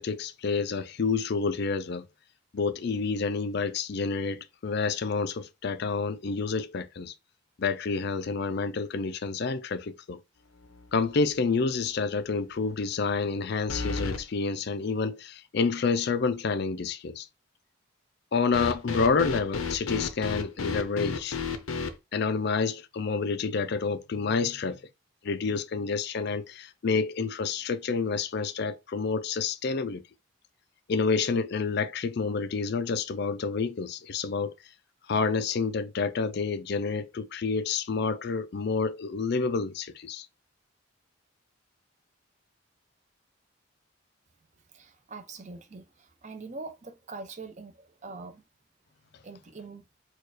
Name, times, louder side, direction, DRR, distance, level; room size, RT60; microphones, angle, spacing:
voice 1, 0.0-2.1 2.5-7.1 7.6-10.2 10.9-17.3 18.3-21.4 22.1-24.8 25.2-30.0 30.9-34.5 35.1-40.3, left 4 dB, 50° left, 0.4 m, -29 dB
sound 1, 10.6-11.0 11.4-11.5 13.7-14.2 18.5-21.9, left 5 dB, 80° left, 0.7 m, -32 dB
voice 2, 44.7-48.4 49.2-49.8, right 3 dB, 35° right, 0.6 m, -43 dB
4.5 x 2.4 x 4.8 m
head